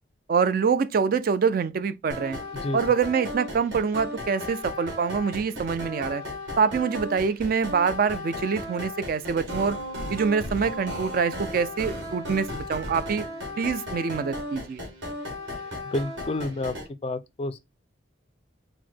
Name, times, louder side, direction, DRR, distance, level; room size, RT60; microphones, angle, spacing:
voice 1, 0.3-2.4 2.7-6.2 6.6-9.8 10.1-13.2 13.6-14.8, right 6 dB, 50° right, 0.3 m, -25 dB
sound 1, 2.1-16.9, left 1 dB, 70° right, 1.7 m, -35 dB
voice 2, 15.9-16.7 17.0-17.6, left 2 dB, 30° left, 0.3 m, -29 dB
4.6 x 2.1 x 4.2 m
head